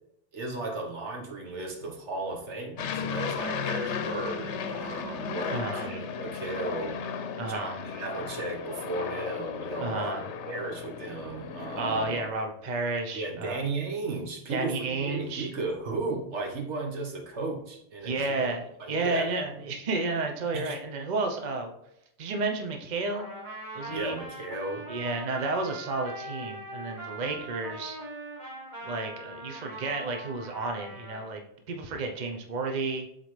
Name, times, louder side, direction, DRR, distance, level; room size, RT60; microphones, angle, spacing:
voice 1, 0.3-7.0 7.5-12.1 13.1-18.5 18.8-19.3 20.5-20.8 23.9-24.8 27.1-27.4, right 3 dB, 75° right, 2 dB, 1.4 m, -35 dB
Aircraft, 2.8-12.3, left 6 dB, 80° left, 0.9 m, -35 dB
voice 2, 5.5-5.9 7.4-7.7 9.8-10.2 11.7-13.6 14.5-15.5 18.0-21.7 22.2-23.3 23.7-24.2 24.9-28.0 28.8-31.4 31.7-33.1, right 3 dB, 40° right, 3 dB, 0.9 m, -31 dB
Trumpet, 23.1-31.3, right 1 dB, 25° right, 2.1 m, -41 dB
7.7 x 4.1 x 3.2 m, 0.77 s
omnidirectional pair, 1.2 m